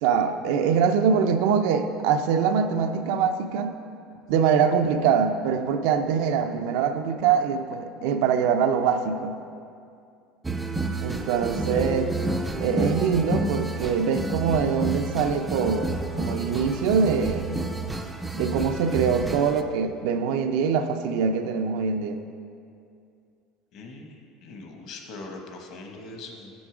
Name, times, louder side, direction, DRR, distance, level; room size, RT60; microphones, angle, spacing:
voice 1, 0.0-3.8 4.3-9.4 11.0-12.1 12.6-17.5 18.4-22.2, right 6 dB, 70° right, 7 dB, 0.5 m, -23 dB
sound 1, 10.4-19.6, right 2 dB, 10° right, 0.4 m, -30 dB
voice 2, 23.7-26.5, left 3 dB, 45° left, 3 dB, 1.0 m, -41 dB
7.6 x 6.2 x 4.9 m, 2.4 s
cardioid pair, 160°, 0 cm